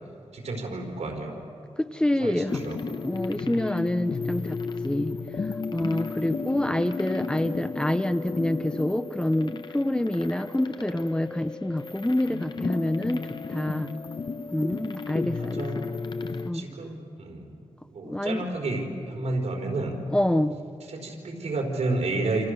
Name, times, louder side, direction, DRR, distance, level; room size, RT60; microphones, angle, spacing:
voice 1, 0.3-1.4 2.2-2.8 6.5-6.7 15.4-15.9 16.5-17.5 17.9-20.0 20.9-22.5, right 2 dB, 85° right, 1 dB, 4.6 m, -31 dB
voice 2, 1.8-2.6 3.0-4.6 4.8-5.1 5.7-13.9 14.5-15.7 16.4-16.7 18.0-18.5 20.1-20.6, left 1 dB, 10° left, 11 dB, 0.6 m, -27 dB
sound 1, 2.5-16.5, left 4 dB, 45° left, 1.0 m, -34 dB
28.5 x 27.5 x 6.7 m, 2.6 s
wide cardioid pair, 170°, 11 cm